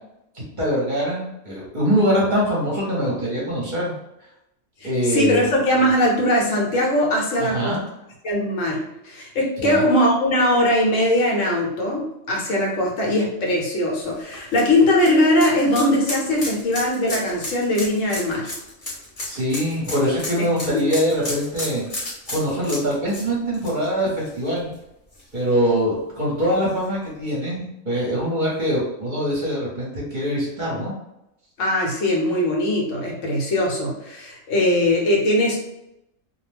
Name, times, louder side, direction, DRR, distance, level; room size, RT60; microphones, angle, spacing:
voice 1, 0.3-3.9 4.8-5.4 7.4-7.8 9.6-9.8 19.2-24.7 25.3-30.9, equal, 40° right, -5 dB, 0.9 m, -23 dB
voice 2, 4.8-7.8 8.2-18.5 20.7-20.8 31.6-35.6, left 1 dB, 70° left, -2 dB, 1.1 m, -20 dB
sound 1, 14.0-24.7 25.1-25.2 26.7-26.8, left 1 dB, 30° left, 0.9 m, -33 dB
2.5 x 2.1 x 3.2 m, 0.86 s
omnidirectional pair, 1.3 m